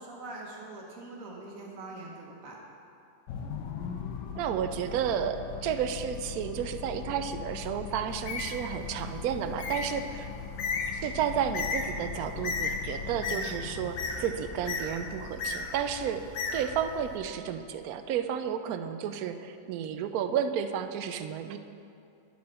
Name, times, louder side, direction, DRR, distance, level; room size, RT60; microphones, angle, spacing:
voice 1, 0.0-2.6, right 2 dB, 50° right, -1 dB, 1.6 m, -43 dB
sound 1, 3.3-17.8, left 7 dB, 90° left, 1.4 m, -41 dB
voice 2, 4.3-10.3 10.9-16.3 16.5-21.6, right 8 dB, 70° right, 9 dB, 0.9 m, -32 dB
Bird, 8.1-17.2, left 4 dB, 60° left, 1.0 m, -36 dB
10.5 x 7.6 x 4.2 m, 2.5 s
omnidirectional pair, 1.9 m